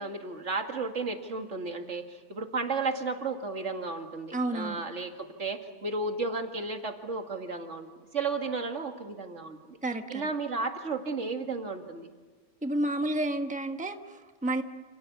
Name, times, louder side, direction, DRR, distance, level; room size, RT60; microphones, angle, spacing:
voice 1, 0.0-9.8 10.1-12.1, right 3 dB, 75° right, 4 dB, 2.5 m, -33 dB
voice 2, 4.3-4.8 9.8-10.2 12.6-14.6, right 1 dB, 5° right, 6 dB, 1.2 m, -30 dB
28.5 x 28.0 x 7.1 m, 1.4 s
omnidirectional pair, 1.3 m